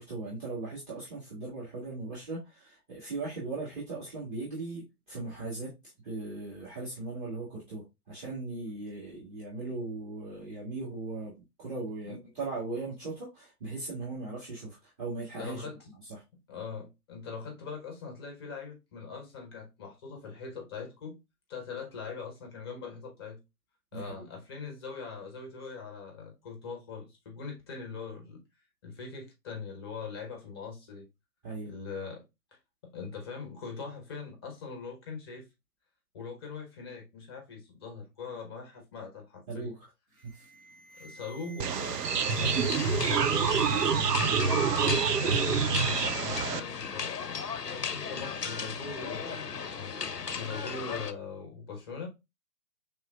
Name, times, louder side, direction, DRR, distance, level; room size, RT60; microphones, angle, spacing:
voice 1, 0.0-5.7 6.0-11.3 11.6-15.7 16.1-16.2 23.9-24.3 31.4-31.7 39.5-39.9 40.2-40.5, right 3 dB, 30° right, 1.8 m, -38 dB
voice 2, 15.4-15.9 16.5-21.2 21.5-23.4 23.9-28.4 28.8-31.1 31.6-32.2 32.8-35.5 36.1-39.7 41.0-43.9 44.5-47.1 47.7-49.5 50.3-52.1, left 5 dB, 15° left, 0.6 m, -41 dB
Alarm, 40.1-44.1 44.4-44.9 45.7-45.8 46.4-46.6 48.5-48.7 50.5-50.7, right 2 dB, 65° right, 1.5 m, -48 dB
sound 1, 41.6-46.6, right 6 dB, 85° right, 0.5 m, -27 dB
sound 2, 42.2-51.1, left 6 dB, 90° left, 0.6 m, -36 dB
5.6 x 3.2 x 2.2 m
figure-of-eight pair, 125°, 47 cm